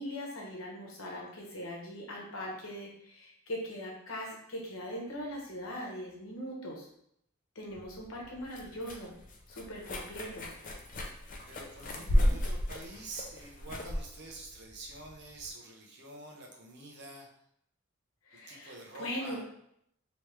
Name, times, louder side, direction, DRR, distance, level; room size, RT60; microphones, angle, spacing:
voice 1, 0.0-6.9 7.5-9.2 9.5-10.5 12.0-12.3 18.3-19.4, equal, 75° left, -1 dB, 1.0 m, -40 dB
sound 1, 7.7-15.5, equal, 40° left, 0.5 m, -34 dB
voice 2, 11.4-17.3 18.3-19.4, right 2 dB, 55° right, 0 dB, 0.8 m, -47 dB
3.3 x 3.0 x 3.2 m, 0.73 s
head